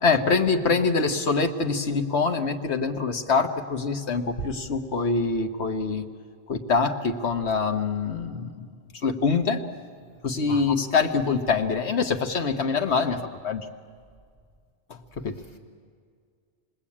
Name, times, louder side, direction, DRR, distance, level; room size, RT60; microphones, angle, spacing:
voice 1, 0.0-6.1 6.5-8.7 9.0-9.6 10.2-13.7 14.9-15.4, left 4 dB, 70° left, 1.6 m, -25 dB
voice 2, 10.2-10.7 15.3-15.6, left 2 dB, 55° left, 2.8 m, -41 dB
28.0 x 20.5 x 8.7 m
omnidirectional pair, 1.2 m